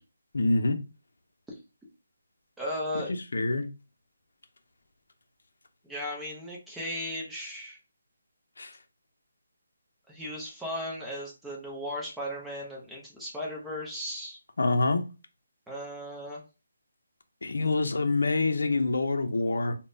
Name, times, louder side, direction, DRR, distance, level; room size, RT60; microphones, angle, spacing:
voice 1, 0.3-0.8 3.1-3.7 8.6-8.8 14.6-15.0 17.4-19.8, left 3 dB, 75° left, 0.5 m, -26 dB
voice 2, 2.6-3.1 5.8-7.8 10.1-14.4 15.7-16.4, equal, 5° right, 0.5 m, -36 dB
3.4 x 2.1 x 2.6 m
hypercardioid pair, 175°, 0 cm